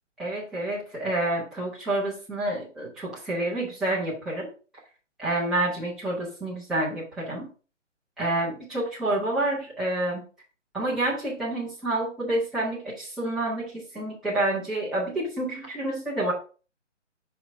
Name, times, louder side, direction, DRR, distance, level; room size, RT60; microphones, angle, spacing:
voice 1, 0.2-4.5 5.2-7.5 8.2-10.2 10.7-16.3, right 1 dB, ahead, -8 dB, 0.8 m, -28 dB
5.8 x 5.7 x 3.4 m, 0.36 s
figure-of-eight pair, 145°, 37 cm